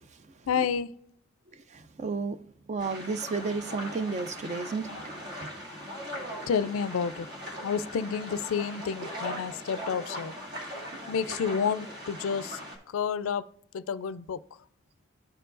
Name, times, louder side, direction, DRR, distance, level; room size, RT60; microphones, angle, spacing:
voice 1, 0.5-0.9 6.5-7.3 7.6-10.3 11.1-12.6 12.9-13.5 13.7-14.4, left 6 dB, 80° left, 0.4 m, -30 dB
voice 2, 2.0-2.4 2.7-4.9, right 4 dB, 35° right, 0.4 m, -31 dB
sound 1, 2.8-12.8, equal, 50° right, 2.3 m, -40 dB
13.5 x 4.6 x 2.5 m
head